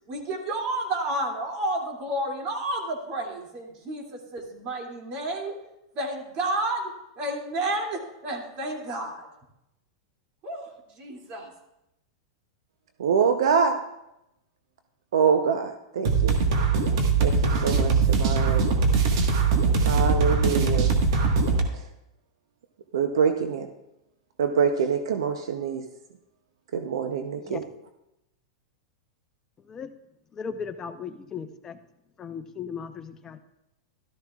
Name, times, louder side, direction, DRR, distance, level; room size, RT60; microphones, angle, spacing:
voice 1, 0.1-5.6 5.9-9.3 10.4-11.5, right 1 dB, 40° right, 0 dB, 2.6 m, -31 dB
voice 2, 13.0-13.8 15.1-16.4 17.2-18.7 19.8-20.9 21.7-21.8 22.9-23.7 24.4-25.8 26.7-27.7, right 6 dB, 85° right, 6 dB, 0.8 m, -25 dB
sound 1, 16.0-21.6, right 4 dB, 65° right, 1.5 m, -21 dB
voice 3, 30.3-31.8 32.2-33.4, left 6 dB, 20° left, 7 dB, 0.8 m, -37 dB
13.0 x 12.5 x 2.4 m, 0.87 s
supercardioid pair, 135°, 3 cm